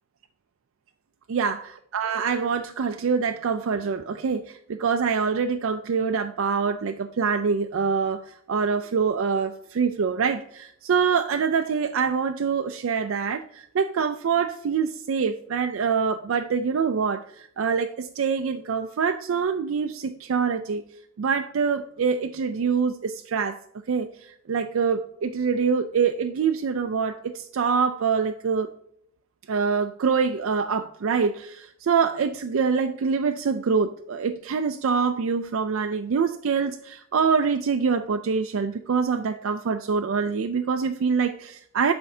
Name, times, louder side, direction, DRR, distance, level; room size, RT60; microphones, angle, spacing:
voice 1, 1.3-20.8 21.2-23.6 23.9-28.7 29.5-41.9, right 5 dB, 65° right, 6 dB, 0.4 m, -25 dB
12.5 x 4.3 x 2.7 m, 0.70 s
head